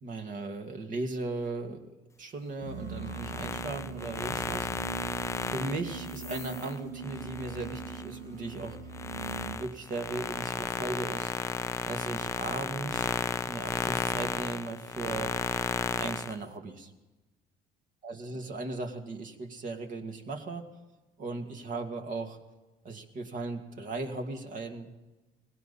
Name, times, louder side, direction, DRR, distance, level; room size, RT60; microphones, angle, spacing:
voice 1, 0.0-4.7 5.5-8.8 9.4-11.3 11.8-13.1 13.4-15.4 15.9-16.9 18.0-20.6 21.2-22.4 22.8-24.9, right 3 dB, 50° right, 4 dB, 2.3 m, -37 dB
sound 1, 2.6-9.6, right 5 dB, 75° right, 1.7 m, -41 dB
sound 2, 3.0-8.1 8.5-16.4, left 4 dB, 15° left, 0.5 m, -34 dB
20.0 x 17.0 x 4.2 m, 1.1 s
cardioid pair, 110°, 17 cm